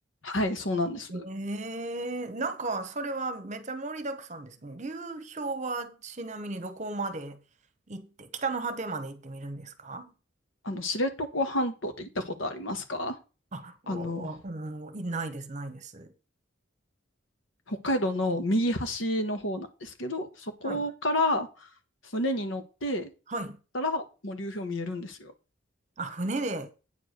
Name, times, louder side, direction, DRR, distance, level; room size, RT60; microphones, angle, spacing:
voice 1, 0.2-1.2 10.6-13.2 13.9-14.3 17.7-21.5 22.1-23.1 23.7-25.3, left 1 dB, 75° left, 1.5 m, -30 dB
voice 2, 1.1-7.4 7.9-10.1 13.5-16.1 20.6-20.8 23.3-23.6 26.0-26.7, right 2 dB, 40° right, 1.0 m, -35 dB
8.8 x 4.7 x 6.6 m
head